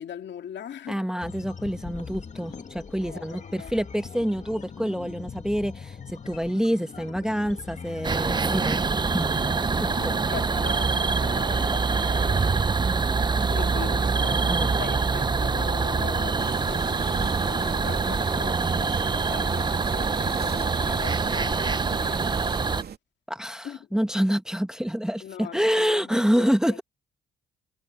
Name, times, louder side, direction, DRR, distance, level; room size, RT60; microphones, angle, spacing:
voice 1, 0.0-1.0 3.0-3.7 9.7-12.7 13.5-22.4 23.6-23.8 25.2-26.8, left 9 dB, 65° left, 2.3 m, -40 dB
voice 2, 0.9-8.8 9.1-9.3 9.8-10.1 14.5-14.7 23.3-26.8, equal, 5° right, 1.3 m, -27 dB
sound 1, 1.2-10.2, left 6 dB, 40° left, 2.1 m, -41 dB
sound 2, 8.0-22.8, right 4 dB, 20° right, 0.7 m, -25 dB
sound 3, 16.4-23.0, right 8 dB, 55° right, 2.7 m, -38 dB
cardioid pair, 90°, 20 cm